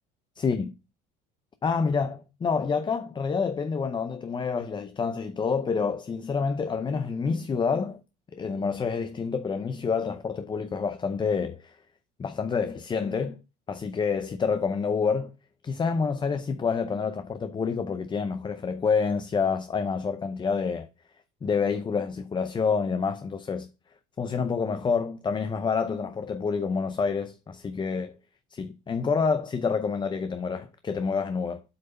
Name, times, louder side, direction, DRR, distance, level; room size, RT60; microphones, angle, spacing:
voice 1, 0.4-0.7 1.6-8.0 8.3-11.7 12.2-13.4 13.7-15.3 15.6-20.9 21.4-23.7 24.2-28.2 28.5-31.6, left 5 dB, 25° left, 0.6 m, -28 dB
7.9 x 3.3 x 5.3 m
supercardioid pair, 95°, 19 cm